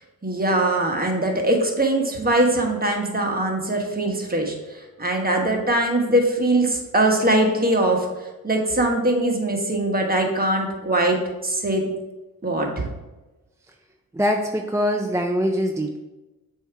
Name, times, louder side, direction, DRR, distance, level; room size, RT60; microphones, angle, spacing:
voice 1, 0.2-11.9 12.4-12.9, right 1 dB, 25° right, 1 dB, 1.2 m, -22 dB
voice 2, 14.1-16.0, equal, 10° right, 2 dB, 0.4 m, -23 dB
7.1 x 2.8 x 4.7 m, 1.1 s
cardioid pair, 65°, 36 cm